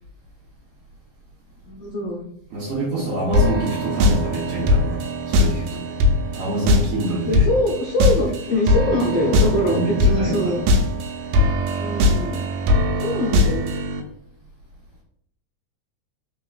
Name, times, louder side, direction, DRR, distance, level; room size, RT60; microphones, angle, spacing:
voice 1, 1.7-2.3 7.2-10.8 11.8-12.4 13.0-13.8, left 1 dB, 80° left, -1 dB, 1.3 m, -23 dB
voice 2, 2.5-5.8 6.3-7.5 9.6-10.5, right 2 dB, 65° right, -4 dB, 1.5 m, -26 dB
sound 1, 3.3-14.0, left 2 dB, 80° right, 2.0 m, -21 dB
4.5 x 3.7 x 2.3 m, 0.70 s
omnidirectional pair, 3.5 m